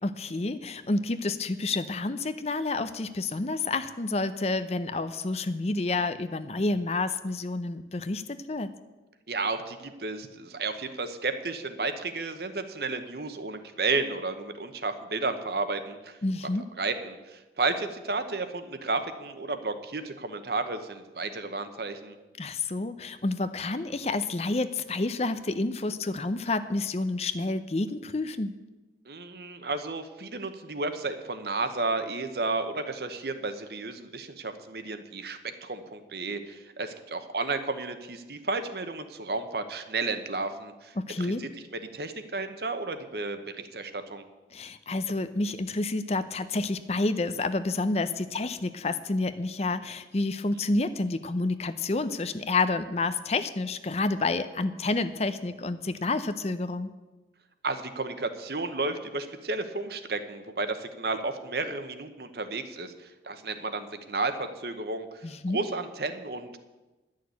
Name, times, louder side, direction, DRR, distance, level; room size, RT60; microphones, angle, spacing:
voice 1, 0.0-8.7 16.2-16.7 22.4-28.5 41.0-41.5 44.5-56.9 65.2-65.6, left 2 dB, 35° left, 11 dB, 0.6 m, -29 dB
voice 2, 9.3-16.2 16.8-22.2 29.1-41.5 41.9-44.2 57.6-65.1 65.5-66.6, right 3 dB, 60° right, 9 dB, 1.0 m, -32 dB
11.0 x 6.5 x 9.4 m, 1.1 s
head